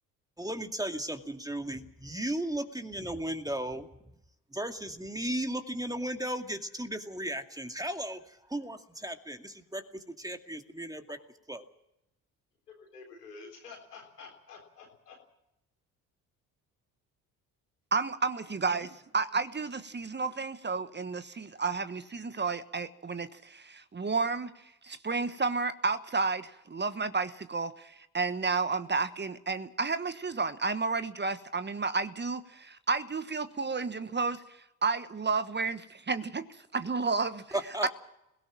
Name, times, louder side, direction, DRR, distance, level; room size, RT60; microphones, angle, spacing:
voice 1, 0.4-3.9 4.5-11.2 11.5-11.6 37.5-37.9, right 1 dB, 10° right, 6 dB, 2.3 m, -35 dB
voice 2, 12.7-15.2, left 4 dB, 90° left, 1 dB, 3.8 m, -49 dB
voice 3, 17.9-18.9 19.1-24.5 24.8-36.4 36.7-37.4 37.8-37.9, right 4 dB, 25° right, 12 dB, 1.3 m, -31 dB
22.0 x 17.5 x 7.4 m, 0.84 s
hypercardioid pair, 55°, 45 cm